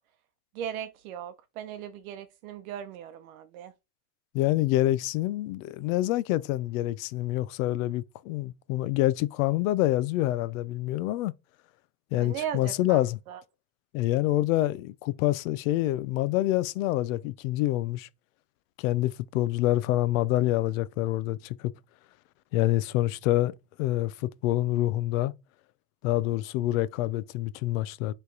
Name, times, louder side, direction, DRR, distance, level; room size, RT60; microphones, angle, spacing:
voice 1, 0.5-3.7 12.1-13.0 13.3-13.4, right 9 dB, 60° right, 0.8 m, -37 dB
voice 2, 4.3-11.3 12.1-13.2 13.9-18.1 18.8-21.7 22.5-25.3 26.0-28.1, left 16 dB, 55° left, 0.6 m, -27 dB
8.2 x 3.4 x 4.6 m
supercardioid pair, 175°, 47 cm